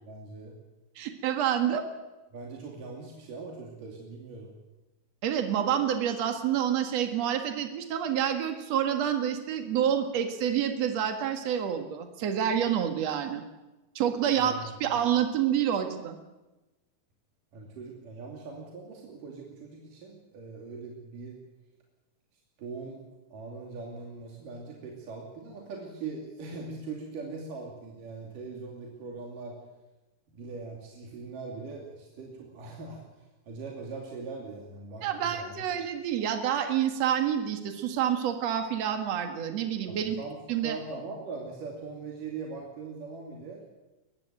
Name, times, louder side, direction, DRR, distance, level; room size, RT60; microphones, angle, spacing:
voice 1, 0.0-0.6 2.3-4.5 14.3-14.9 17.5-21.4 22.6-23.0 23.3-29.6 30.3-33.0 33.5-35.7 39.9-43.6, right 4 dB, 80° right, -1 dB, 4.4 m, -41 dB
voice 2, 1.0-1.9 5.2-13.4 14.0-16.2 35.0-40.2 40.5-40.8, right 9 dB, 55° right, 6 dB, 2.8 m, -28 dB
22.0 x 14.5 x 9.1 m, 1.1 s
omnidirectional pair, 3.7 m